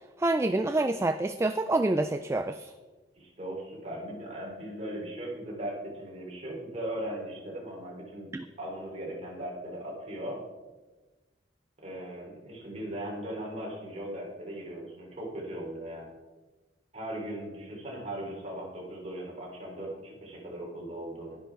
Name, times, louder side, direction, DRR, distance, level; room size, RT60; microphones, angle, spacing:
voice 1, 0.2-2.7 8.3-8.4, right 2 dB, 15° right, 10 dB, 0.3 m, -27 dB
voice 2, 3.2-8.3 8.6-10.4 11.8-16.1 16.9-21.4, right 1 dB, 35° right, -2 dB, 3.5 m, -38 dB
11.5 x 10.0 x 4.6 m, 1.2 s
head